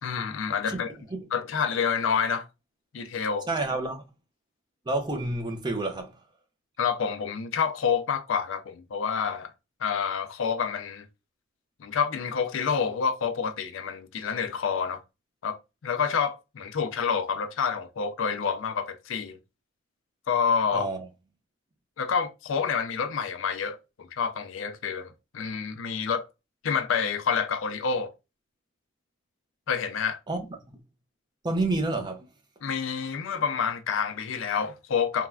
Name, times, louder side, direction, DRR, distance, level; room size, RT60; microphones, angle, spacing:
voice 1, 0.0-0.9 1.3-2.4 2.9-3.5 6.8-9.5 9.8-11.0 11.8-15.0 15.4-15.6 15.8-19.4 20.3-20.9 22.0-26.2 26.6-28.1 29.7-30.2 32.6-35.3, left 6 dB, 70° left, 0.4 m, -28 dB
voice 2, 3.5-4.0 4.9-6.1 20.7-21.1 30.3-30.5 31.4-32.3, right 2 dB, 20° right, 0.4 m, -29 dB
3.2 x 2.1 x 2.3 m
head